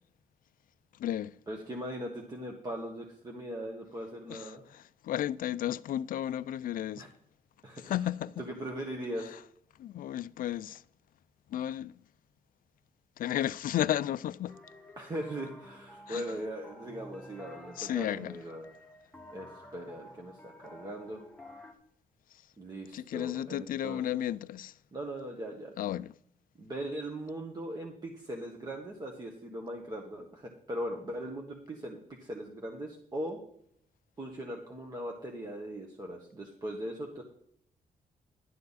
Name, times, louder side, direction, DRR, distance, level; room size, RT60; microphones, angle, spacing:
voice 1, 0.9-1.4 4.3-7.1 7.8-8.4 9.2-9.4 9.8-10.8 11.5-12.0 13.2-14.6 16.1-16.2 17.8-18.4 22.3-22.4 22.9-24.8 25.8-26.1, left 11 dB, 65° left, 0.4 m, -33 dB
voice 2, 1.5-4.6 7.0-7.1 7.6-7.9 8.4-9.4 15.0-18.7 19.3-21.2 22.6-24.0 24.9-25.7 26.6-33.4 34.2-37.2, right 1 dB, 25° right, 1.4 m, -39 dB
sound 1, 14.5-21.7, left 1 dB, 5° left, 1.3 m, -51 dB
11.5 x 9.2 x 4.1 m
wide cardioid pair, 145°, 15 cm